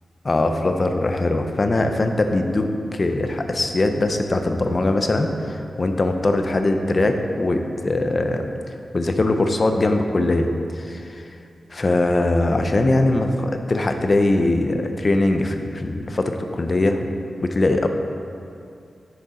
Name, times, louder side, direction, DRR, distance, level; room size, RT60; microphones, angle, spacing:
voice 1, 0.2-2.7 2.9-8.5 8.9-10.5 10.8-11.2 11.7-17.1 17.4-17.9, left 2 dB, 35° left, 6 dB, 0.5 m, -21 dB
10.0 x 6.8 x 3.7 m, 2.5 s
wide cardioid pair, 165°, 0 cm